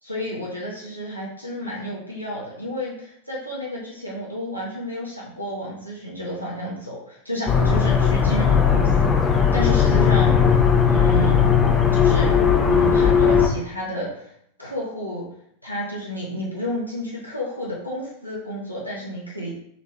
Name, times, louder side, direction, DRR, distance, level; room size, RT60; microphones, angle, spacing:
voice 1, 0.0-10.4 10.8-11.5 11.9-12.4 12.7-14.3 14.6-15.2 15.6-19.5, equal, 90° left, -6 dB, 0.8 m, -31 dB
sound 1, 7.5-13.5, left 7 dB, 20° left, 0.6 m, -17 dB
4.2 x 3.0 x 2.8 m, 0.70 s
figure-of-eight pair, 90°, 0 cm